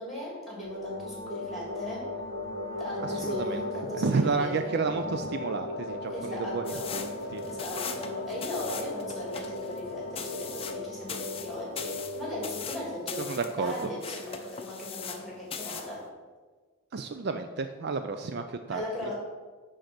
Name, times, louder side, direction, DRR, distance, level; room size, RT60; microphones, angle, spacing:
voice 1, 0.0-2.1 2.8-4.8 6.1-6.9 7.4-16.0 18.7-19.1, left 1 dB, ahead, -4 dB, 2.7 m, -37 dB
sound 1, 0.6-12.9, left 2 dB, 75° right, 1.5 m, -38 dB
voice 2, 3.0-3.6 3.9-7.4 13.3-13.7 16.9-18.8, right 4 dB, 50° right, 7 dB, 0.4 m, -31 dB
Wind instrument woodwind instrument, 5.4-11.1, left 2 dB, 75° left, 0.6 m, -43 dB
sound 2, 6.6-15.2 15.5-15.9, left 6 dB, 25° left, 0.6 m, -40 dB
10.0 x 3.9 x 6.0 m, 1.4 s
head